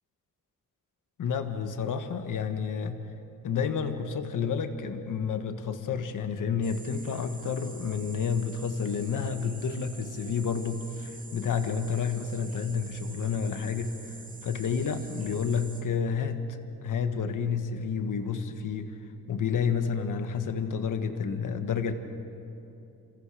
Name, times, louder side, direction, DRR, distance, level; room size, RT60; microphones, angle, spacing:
voice 1, 1.2-3.0 3.4-14.1 14.4-16.5 16.8-18.9 19.3-21.9, left 6 dB, 70° left, 7 dB, 1.6 m, -30 dB
sound 1, 6.6-15.8, right 3 dB, 25° right, 2.5 m, -47 dB
28.0 x 27.0 x 5.0 m, 2.8 s
wide cardioid pair, 145°, 32 cm